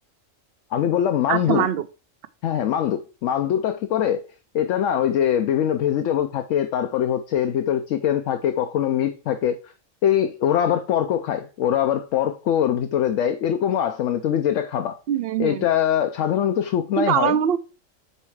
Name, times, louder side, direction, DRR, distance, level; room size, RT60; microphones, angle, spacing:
voice 1, 0.7-1.7 2.4-4.2 4.5-9.6 10.0-15.0 15.4-17.4, left 10 dB, 75° left, 0.9 m, -22 dB
voice 2, 1.3-1.9 15.1-15.7 17.0-17.6, right 9 dB, 60° right, 0.6 m, -22 dB
5.5 x 4.3 x 4.6 m
omnidirectional pair, 1.4 m